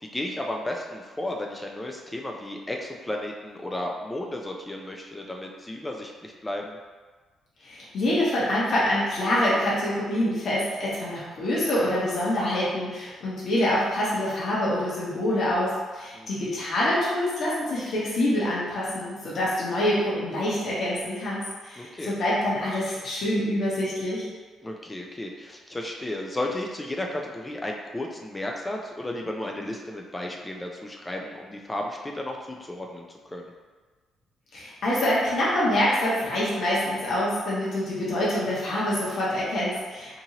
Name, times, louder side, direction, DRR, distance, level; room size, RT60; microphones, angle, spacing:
voice 1, 0.0-6.8 16.1-16.6 21.8-22.1 24.6-33.5, left 1 dB, 15° left, 1 dB, 0.3 m, -34 dB
voice 2, 7.6-24.3 34.5-40.2, left 1 dB, 60° left, -8 dB, 0.9 m, -26 dB
2.8 x 2.5 x 2.8 m, 1.4 s
cardioid pair, 90°, 0 cm